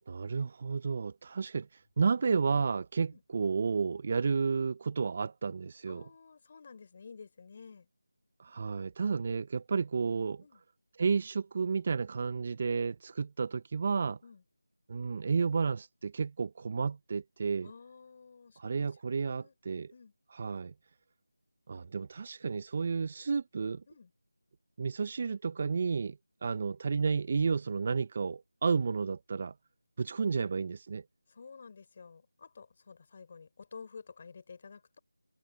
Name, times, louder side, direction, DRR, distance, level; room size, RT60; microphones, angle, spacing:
voice 1, 0.1-1.7 2.0-6.0 8.4-10.4 11.0-14.2 14.9-17.7 18.6-19.9 20.4-20.7 21.7-23.8 24.8-29.5 30.0-31.0, right 5 dB, 35° right, 1.0 m, -31 dB
voice 2, 3.1-3.4 5.9-7.9 10.4-10.6 14.0-14.4 17.6-18.9 19.2-20.1 23.9-24.1 26.5-26.6 31.3-35.0, left 5 dB, 35° left, 6.7 m, -52 dB
figure-of-eight pair, 165°, 0 cm